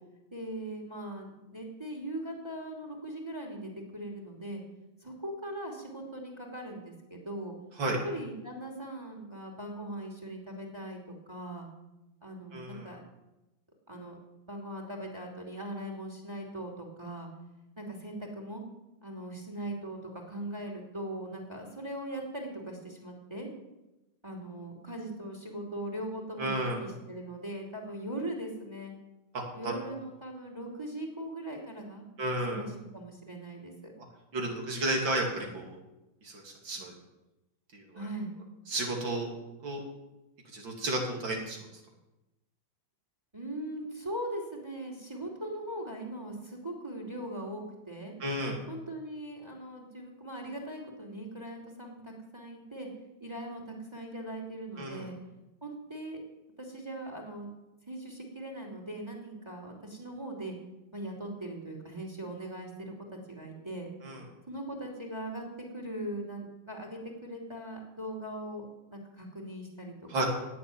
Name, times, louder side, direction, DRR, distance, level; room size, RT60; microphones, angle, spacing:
voice 1, 0.3-4.6 5.0-7.5 8.0-11.0 11.3-11.7 12.2-13.0 13.9-14.2 14.5-17.3 17.8-18.6 19.0-23.5 24.2-28.9 29.5-32.0 32.5-33.9 37.9-38.3 43.3-48.1 48.7-52.9 53.2-55.2 55.6-56.2 56.6-57.5 57.9-60.6 60.9-63.9 64.5-65.4 65.7-69.9, right 1 dB, 15° right, 0 dB, 2.8 m, -40 dB
voice 2, 12.5-12.9 26.4-26.8 29.3-29.7 32.2-32.6 34.3-35.8 36.2-36.9 37.7-37.8 38.7-39.3 39.6-39.8 40.5-41.6 48.2-48.6 54.8-55.1 64.0-64.2 70.1-70.3, right 1 dB, 80° right, 1 dB, 3.7 m, -32 dB
17.5 x 7.2 x 9.5 m, 1.0 s
omnidirectional pair, 2.0 m